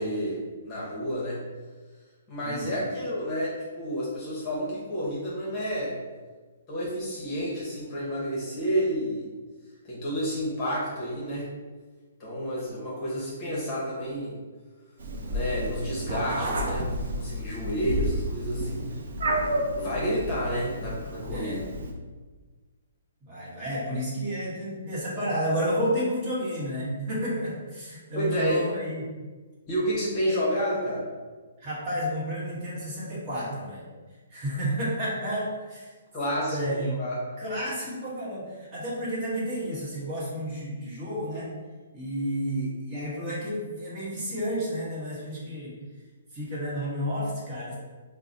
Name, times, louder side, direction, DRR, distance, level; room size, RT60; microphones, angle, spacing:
voice 1, 0.0-1.4 2.3-5.9 6.7-9.3 9.8-11.5 12.2-14.4 15.3-16.9 17.1-18.9 19.4-21.6 28.2-28.6 29.7-31.1 36.1-37.2, equal, 25° left, -6 dB, 0.9 m, -30 dB
voice 2, 2.4-2.8 21.3-21.6 23.2-29.1 31.6-33.8 34.3-35.9 36.5-37.0 37.4-41.5 41.9-45.8 46.3-47.8, equal, 25° right, -8 dB, 1.1 m, -31 dB
Meow, 15.0-21.9, equal, 65° right, 0.6 m, -31 dB
4.5 x 2.0 x 2.6 m, 1.4 s
hypercardioid pair, 155°, 0 cm